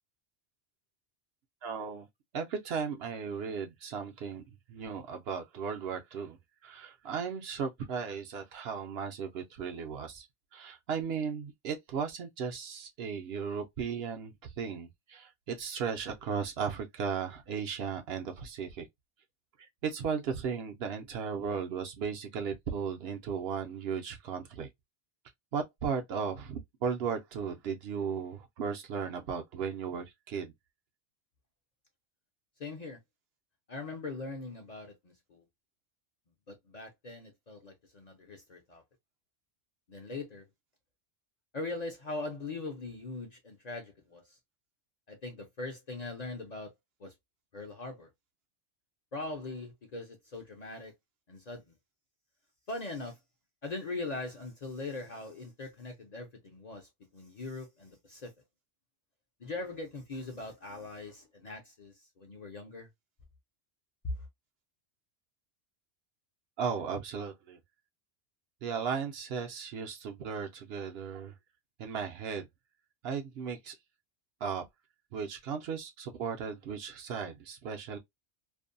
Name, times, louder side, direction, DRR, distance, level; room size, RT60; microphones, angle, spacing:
voice 1, 1.6-2.1 2.3-4.4 4.7-10.3 10.5-18.9 19.6-24.7 25.5-30.5 66.6-67.6 68.6-71.3 71.8-72.5 73.0-73.7 74.4-74.6 75.1-78.0, right 6 dB, 65° right, 0.7 m, -36 dB
voice 2, 32.6-33.0 33.7-35.4 36.5-38.8 39.9-40.4 41.5-44.2 45.1-46.7 47.0-47.1 47.5-48.1 49.1-50.9 51.3-51.6 52.7-53.2 53.6-58.3 59.4-62.9, left 3 dB, 45° left, 0.6 m, -41 dB
2.6 x 2.1 x 2.5 m
omnidirectional pair, 1.2 m